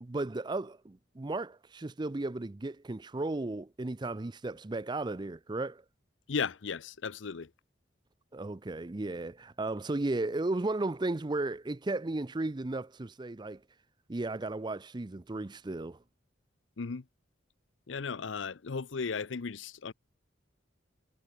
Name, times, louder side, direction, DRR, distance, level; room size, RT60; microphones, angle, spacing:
voice 1, 0.0-5.8 8.3-13.6 14.1-16.0, right 2 dB, 25° right, 0.5 m, -35 dB
voice 2, 6.3-7.5 16.8-17.0 17.9-19.9, left 5 dB, 75° left, 0.6 m, -35 dB
head